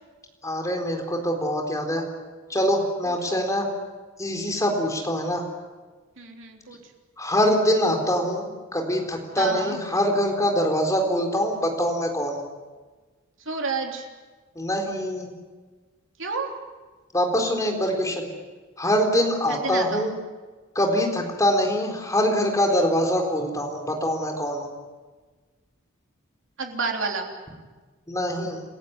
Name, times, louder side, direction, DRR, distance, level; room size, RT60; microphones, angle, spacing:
voice 1, 0.4-2.0 2.5-3.7 4.2-5.4 7.2-12.5 14.6-15.3 17.1-18.3 18.8-20.1 20.7-24.7 28.1-28.6, equal, 15° left, 2 dB, 4.1 m, -24 dB
voice 2, 3.1-3.4 6.2-6.8 9.4-9.8 13.5-14.1 16.2-16.6 19.5-20.1 26.6-27.3, right 4 dB, 65° right, 2 dB, 3.5 m, -30 dB
28.5 x 15.5 x 9.7 m, 1.4 s
head